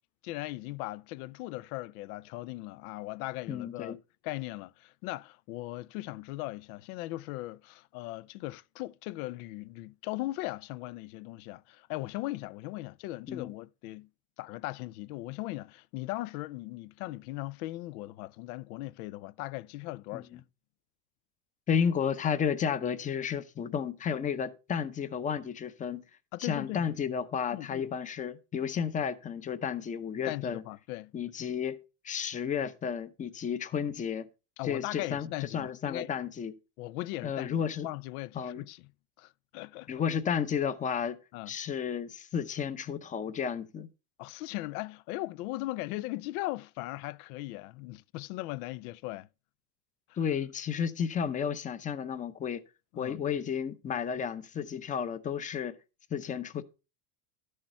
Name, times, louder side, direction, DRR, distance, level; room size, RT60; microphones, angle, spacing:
voice 1, 0.2-4.0 4.2-14.1 14.4-20.4 26.3-26.9 27.5-27.9 30.3-31.1 34.6-36.1 36.8-38.9 39.2-39.9 41.3-41.5 44.2-49.3 52.9-53.2, left 18 dB, 85° left, 0.6 m, -38 dB
voice 2, 3.5-4.0 13.3-13.5 20.1-20.4 21.7-26.0 26.4-30.6 31.1-31.8 32.0-34.3 34.6-36.5 37.2-37.9 38.3-38.6 39.9-41.2 41.5-43.9 50.2-52.6 53.0-55.7 56.1-56.6, left 7 dB, 20° left, 0.6 m, -32 dB
12.0 x 6.6 x 4.3 m
cardioid pair, 155°, 43 cm